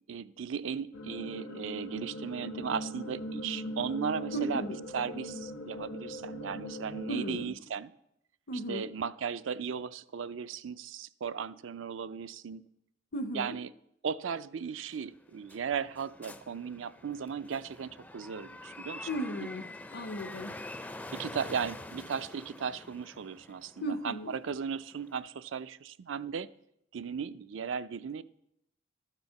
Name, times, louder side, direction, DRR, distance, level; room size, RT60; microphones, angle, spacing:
voice 1, 0.1-4.6 4.9-7.9 8.7-12.7 13.3-13.7 14.0-19.1 21.1-26.5 26.9-28.2, right 6 dB, 75° right, 14 dB, 0.4 m, -36 dB
sound 1, 0.9-7.4, left 1 dB, 80° left, 1.1 m, -40 dB
voice 2, 4.3-4.8 7.1-7.5 8.5-8.9 13.1-13.5 19.1-20.6 23.8-24.3, right 1 dB, 55° left, 12 dB, 0.7 m, -35 dB
sound 2, 14.9-25.2, left 2 dB, 10° left, 0.4 m, -46 dB
12.0 x 6.8 x 5.8 m, 0.78 s
head